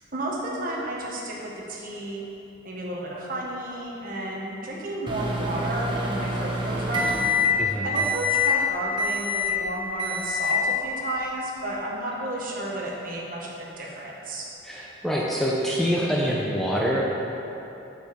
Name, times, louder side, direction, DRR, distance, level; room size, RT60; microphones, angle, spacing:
voice 1, 0.1-2.3 2.6-7.2 7.8-14.5, right 1 dB, 45° right, -3 dB, 1.4 m, -32 dB
Microwave oven, 5.1-7.6 8.0-8.5 9.0-9.6 10.0-10.6, left 3 dB, 25° right, 1.0 m, -26 dB
voice 2, 7.6-7.9 14.6-17.0, equal, ahead, -4 dB, 0.6 m, -25 dB
7.6 x 6.9 x 5.2 m, 2.9 s
head